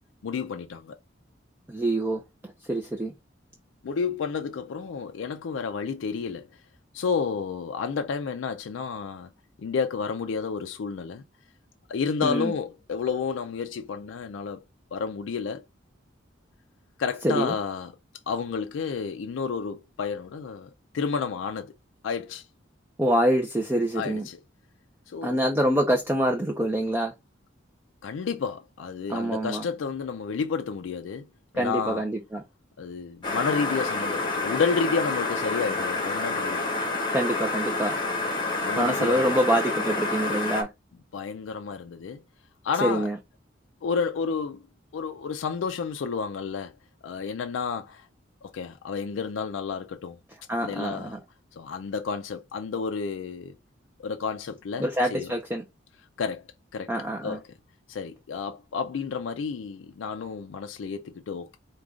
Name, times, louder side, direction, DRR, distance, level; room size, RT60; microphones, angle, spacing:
voice 1, 0.2-1.0 3.8-6.5 6.9-9.3 9.6-11.2 11.9-14.6 14.9-15.6 17.0-17.9 18.3-21.7 22.0-22.5 23.9-24.4 25.1-25.4 28.0-31.3 31.5-32.0 32.8-36.7 38.6-39.4 41.1-42.2 42.6-43.1 43.8-44.6 44.9-46.7 47.0-48.1 48.4-50.2 50.6-51.2 51.6-53.5 54.0-55.3 56.2-56.4 56.7-56.9 57.2-57.4 57.9-61.6, left 5 dB, 85° left, 0.4 m, -31 dB
voice 2, 1.7-3.1 12.2-12.5 17.2-17.5 23.0-24.3 25.2-27.1 29.1-29.7 31.5-32.4 37.1-38.0 38.8-40.7 42.8-43.2 50.5-51.2 54.8-55.6 56.9-57.4, right 1 dB, 10° right, 0.5 m, -26 dB
sound 1, 33.2-40.6, left 3 dB, 25° left, 0.9 m, -28 dB
4.8 x 2.3 x 3.6 m
head